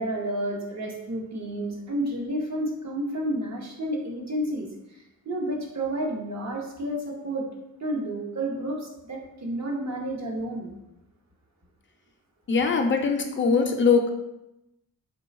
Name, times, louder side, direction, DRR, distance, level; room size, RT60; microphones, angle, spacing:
voice 1, 0.0-7.5 7.8-10.7, right 1 dB, 45° right, 0 dB, 0.8 m, -31 dB
voice 2, 12.5-14.1, left 5 dB, 30° left, 4 dB, 0.4 m, -22 dB
3.9 x 2.3 x 4.0 m, 0.88 s
wide cardioid pair, 155°, 38 cm